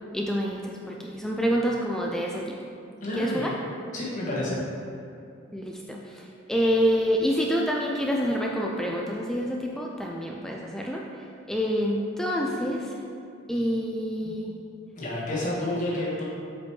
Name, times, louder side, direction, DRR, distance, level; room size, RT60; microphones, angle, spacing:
voice 1, 0.1-2.6 3.2-3.5 5.5-11.0 11.5-12.9 13.5-14.6, equal, ahead, -2 dB, 0.3 m, -27 dB
voice 2, 3.0-3.6 3.9-4.6 14.9-16.2, left 1 dB, 40° left, -6 dB, 1.6 m, -29 dB
7.8 x 5.1 x 3.2 m, 2.5 s
head